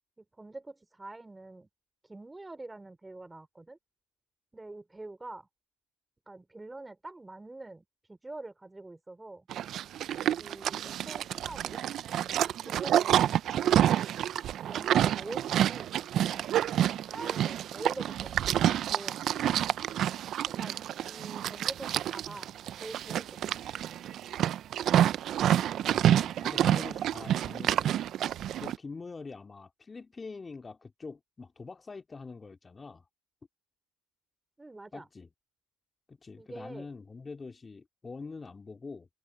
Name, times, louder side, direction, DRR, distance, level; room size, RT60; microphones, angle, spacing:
voice 1, 0.2-1.7 2.0-3.8 4.5-5.5 6.3-9.5 10.4-11.8 12.4-13.3 13.6-14.0 14.6-15.9 16.2-16.4 16.7-19.2 20.5-22.5 22.8-23.4 34.6-35.1 36.4-36.9, right 2 dB, 10° right, 4.6 m, -45 dB
Livestock farm animals working animals, 9.5-28.8, right 11 dB, 45° right, 0.7 m, -28 dB
voice 2, 25.8-27.9 28.6-33.0 34.9-35.3 36.1-39.1, left 4 dB, 20° left, 2.6 m, -44 dB
supercardioid pair, 95°, 0 cm